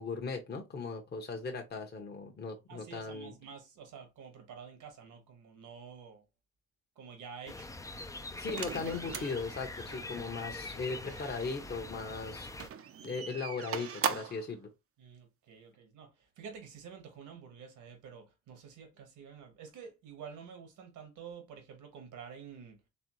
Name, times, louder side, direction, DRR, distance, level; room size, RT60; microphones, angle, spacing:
voice 1, 0.0-3.3 8.4-12.5 13.0-14.7, left 4 dB, 35° left, 1.0 m, -38 dB
voice 2, 2.7-6.2 6.9-7.8 9.9-10.2 15.0-22.8, right 6 dB, 80° right, 1.8 m, -49 dB
sound 1, 7.5-12.7, left 2 dB, 10° left, 0.5 m, -44 dB
sound 2, 8.5-11.5 12.5-14.5, right 7 dB, 50° right, 0.7 m, -39 dB
4.2 x 3.3 x 3.1 m
cardioid pair, 90°, 30 cm